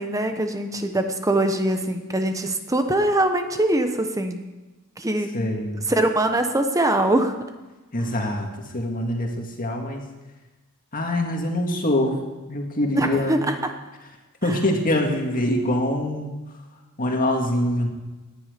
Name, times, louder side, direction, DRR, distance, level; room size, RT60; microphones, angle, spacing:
voice 1, 0.0-4.4 5.0-5.3 5.9-7.3 12.9-13.6, right 1 dB, 15° right, 6 dB, 1.0 m, -22 dB
voice 2, 5.3-5.9 7.9-10.0 10.9-13.5 14.4-16.3 17.0-17.9, left 1 dB, 40° left, 2 dB, 2.0 m, -24 dB
18.0 x 10.5 x 5.2 m, 1.1 s
head